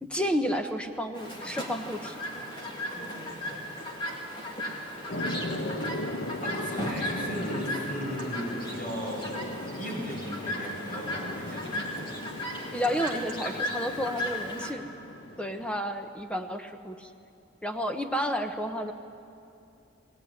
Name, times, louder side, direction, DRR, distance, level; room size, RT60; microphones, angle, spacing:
voice 1, 0.0-2.1 12.7-14.8 15.4-17.1 17.6-18.9, equal, 5° left, 6 dB, 1.0 m, -31 dB
Chirp tweet, 1.1-14.7, left 1 dB, 25° left, 2.4 m, -36 dB
sound 1, 5.1-15.8, left 1 dB, 65° left, 1.4 m, -38 dB
voice 2, 6.4-12.0, equal, 40° left, -3 dB, 7.0 m, -36 dB
21.5 x 17.0 x 9.6 m, 2.7 s
head